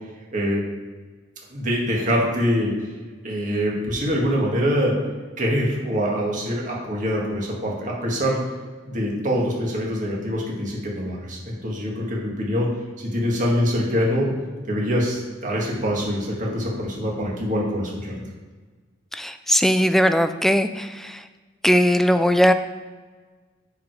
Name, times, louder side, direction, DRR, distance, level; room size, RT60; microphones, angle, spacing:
voice 1, 1.5-2.7 3.2-5.0 5.4-8.4 8.9-12.7 13.0-14.3 14.7-18.2, equal, 40° right, -3 dB, 1.9 m, -24 dB
voice 2, 19.1-21.2 21.6-22.5, equal, ahead, 9 dB, 0.3 m, -19 dB
9.1 x 4.9 x 5.0 m, 1.4 s
head